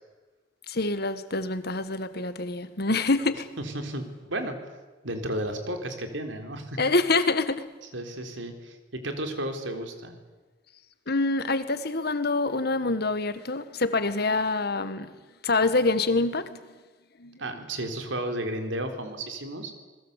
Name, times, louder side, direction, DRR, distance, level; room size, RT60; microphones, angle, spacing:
voice 1, 0.7-3.5 6.8-7.6 11.1-15.1 15.4-16.6 17.2-17.4, left 3 dB, 60° left, 1.7 m, -26 dB
voice 2, 3.6-4.6 5.0-6.8 7.8-10.2 17.4-19.7, right 1 dB, 90° right, 3.9 m, -33 dB
27.5 x 20.5 x 8.4 m
head